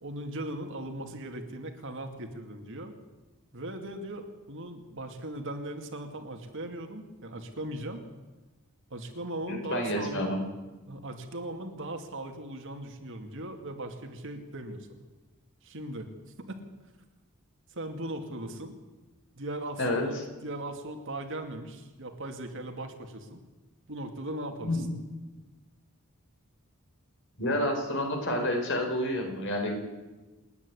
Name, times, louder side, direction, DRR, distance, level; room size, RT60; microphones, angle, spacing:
voice 1, 0.0-2.9 3.5-8.1 8.9-10.3 10.9-15.1 15.6-16.1 16.4-16.6 17.7-18.7 19.4-23.4 23.9-24.9, right 1 dB, 60° right, 5 dB, 2.3 m, -38 dB
voice 2, 9.5-10.4 19.8-20.1 24.6-24.9 27.4-29.8, left 1 dB, 55° left, 2 dB, 5.0 m, -29 dB
28.0 x 9.6 x 9.9 m, 1.2 s
head